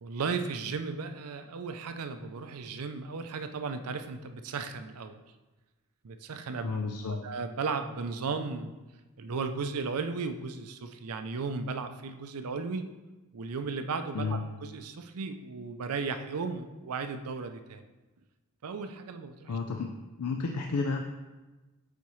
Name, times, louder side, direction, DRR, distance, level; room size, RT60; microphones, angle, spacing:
voice 1, 0.0-5.2 6.0-6.8 7.1-8.7 9.2-12.9 13.3-17.9 18.6-19.6, right 4 dB, 80° right, 9 dB, 0.5 m, -35 dB
voice 2, 6.6-7.2 14.1-14.4 19.5-19.9 20.2-21.0, left 4 dB, 85° left, 3 dB, 0.5 m, -31 dB
8.3 x 4.2 x 3.1 m, 1.2 s
head